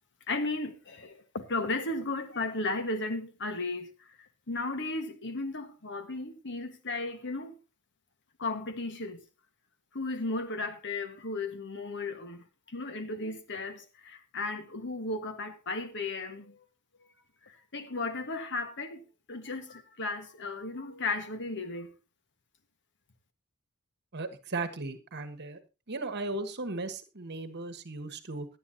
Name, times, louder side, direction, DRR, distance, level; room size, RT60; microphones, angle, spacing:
voice 1, 0.3-7.6 8.4-9.2 9.9-16.6 17.4-21.9, left 3 dB, 55° left, 1.5 m, -35 dB
voice 2, 24.1-25.6 25.9-28.5, right 2 dB, 50° right, 1.3 m, -36 dB
17.5 x 11.0 x 2.8 m
head